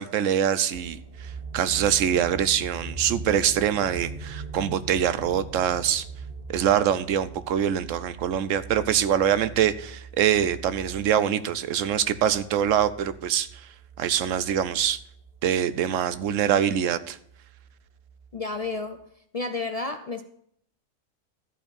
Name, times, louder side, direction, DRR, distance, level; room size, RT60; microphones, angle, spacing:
voice 1, 0.0-6.1 6.5-13.5 14.0-15.0 15.4-17.2, right 9 dB, 75° right, 14 dB, 1.1 m, -24 dB
sound 1, 0.7-18.6 19.0-19.1, right 3 dB, 50° right, 2.2 m, -42 dB
voice 2, 18.3-19.1 19.3-20.2, left 3 dB, 50° left, 8 dB, 0.4 m, -31 dB
13.5 x 4.5 x 8.7 m, 0.68 s
omnidirectional pair, 1.3 m